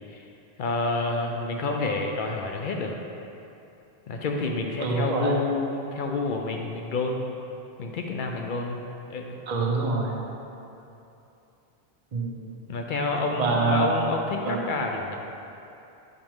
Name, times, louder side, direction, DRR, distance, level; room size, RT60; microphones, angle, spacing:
voice 1, 0.6-2.9 4.1-7.3 7.8-8.8 9.1-9.4 12.7-15.2, left 3 dB, 60° left, 2 dB, 0.6 m, -29 dB
voice 2, 4.8-5.4 9.5-10.2 12.1-12.5 13.4-14.0 14.4-14.6, right 3 dB, 45° right, -1 dB, 0.7 m, -26 dB
5.9 x 5.0 x 3.5 m, 2.8 s
omnidirectional pair, 1.1 m